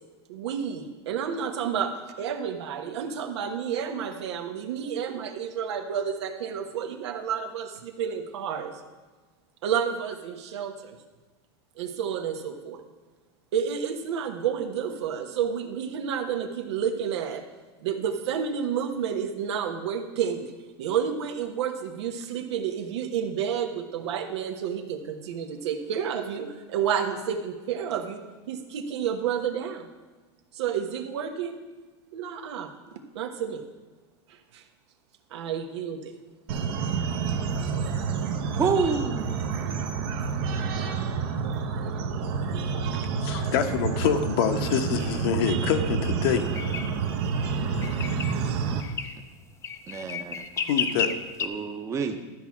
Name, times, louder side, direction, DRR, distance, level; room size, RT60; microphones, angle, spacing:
voice 1, 0.3-8.8 9.6-11.0 11.8-12.8 13.5-17.4 17.8-20.5 20.8-29.9 30.5-31.6 32.1-32.7 33.1-33.7 34.3-34.6 35.3-36.1, right 8 dB, 90° right, 5 dB, 1.4 m, -30 dB
sound 1, 36.5-48.8, right 5 dB, 65° right, 1.2 m, -29 dB
voice 2, 38.5-39.5 49.9-50.4 51.4-52.2, right 5 dB, 20° right, 7 dB, 0.9 m, -28 dB
voice 3, 43.2-46.4 50.6-51.1, left 8 dB, 65° left, 7 dB, 1.0 m, -26 dB
sound 2, 46.5-46.9 47.8-48.4 48.8-49.1 49.6-51.5, left 7 dB, 20° left, 0.6 m, -31 dB
13.0 x 4.8 x 7.3 m, 1.3 s
supercardioid pair, 155°, 14 cm